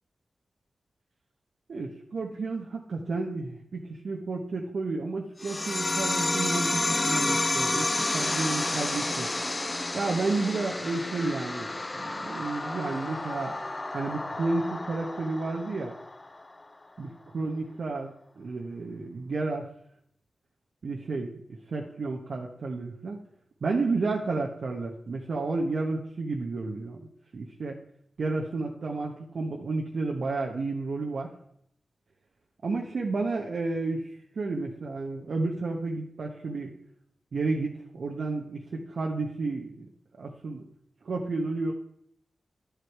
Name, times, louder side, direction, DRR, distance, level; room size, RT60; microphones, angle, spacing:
voice 1, 1.7-9.3 9.9-13.5 13.9-15.9 17.0-19.7 20.8-21.3 21.7-23.2 23.6-27.1 27.3-27.8 28.2-31.3 32.6-36.7 37.3-39.9 40.1-40.6 41.0-41.7, right 3 dB, 75° right, 0 dB, 1.1 m, -31 dB
sound 1, 5.4-16.4, left 2 dB, 30° left, 0.6 m, -30 dB
11.5 x 8.2 x 4.7 m, 0.70 s
cardioid pair, 45°, 0 cm